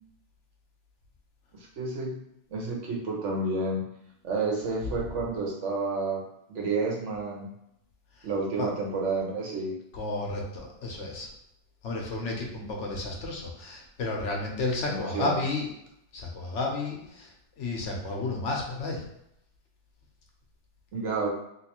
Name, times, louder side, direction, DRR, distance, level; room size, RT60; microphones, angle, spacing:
voice 1, 1.5-2.1 2.5-3.8 4.2-6.2 6.5-7.5 8.2-9.7 14.9-15.4 20.9-21.3, right 3 dB, 85° right, -2 dB, 1.3 m, -30 dB
voice 2, 9.9-11.3 11.8-15.7 16.1-17.3 17.6-19.0, left 3 dB, 80° left, 0 dB, 1.1 m, -32 dB
3.2 x 3.1 x 2.9 m, 0.78 s
omnidirectional pair, 1.2 m